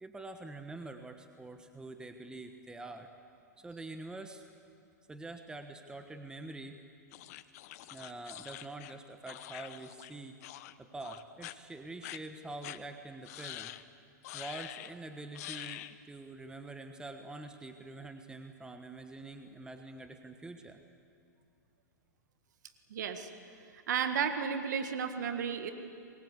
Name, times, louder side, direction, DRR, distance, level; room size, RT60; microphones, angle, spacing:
voice 1, 0.0-3.1 3.6-4.4 5.1-6.8 7.9-10.4 10.8-13.7 14.3-20.8, right 2 dB, 10° right, 6 dB, 1.2 m, -45 dB
sound 1, 7.1-10.1 10.4-10.7 11.0-11.6 12.0-12.2 12.6-12.8 13.3-13.8 14.2-14.9 15.4-15.9, left 15 dB, 55° left, 1.0 m, -45 dB
voice 2, 22.9-23.3 23.7-25.7, right 7 dB, 70° right, 8 dB, 1.8 m, -33 dB
25.5 x 22.0 x 8.3 m, 2.5 s
hypercardioid pair, 120°, 10 cm